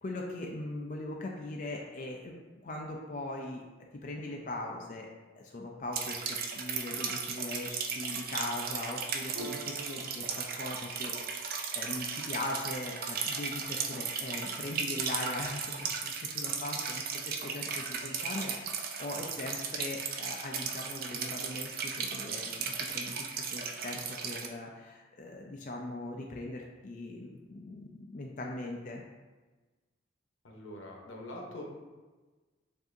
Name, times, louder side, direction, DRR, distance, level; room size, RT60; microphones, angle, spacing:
voice 1, 0.0-2.3 2.6-3.6 4.0-5.1 5.4-6.2 6.5-22.7 22.9-29.0, left 2 dB, 40° left, 0 dB, 0.4 m, -40 dB
sound 1, 5.9-24.5, right 6 dB, 50° right, 0.4 m, -36 dB
Piano, 9.3-16.3, right 2 dB, 85° right, 1.0 m, -52 dB
voice 2, 30.4-31.6, left 1 dB, 85° left, 0 dB, 0.9 m, -44 dB
7.0 x 2.7 x 2.6 m, 1.3 s
head